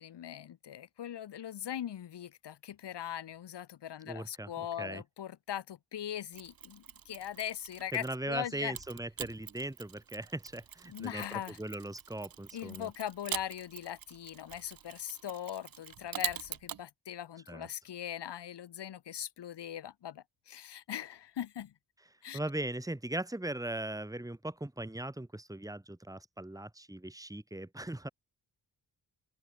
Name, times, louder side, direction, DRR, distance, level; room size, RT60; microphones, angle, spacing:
voice 1, 0.0-8.7 10.9-11.6 12.5-21.7 22.2-22.4, left 10 dB, 80° left, 2.0 m, -40 dB
voice 2, 4.0-5.0 7.9-12.9 17.5-17.7 22.3-28.1, right 1 dB, 10° right, 4.2 m, -39 dB
Mechanisms, 6.3-8.2 8.7-16.8, right 9 dB, 55° right, 1.5 m, -44 dB
open air
wide cardioid pair, 120°, 41 cm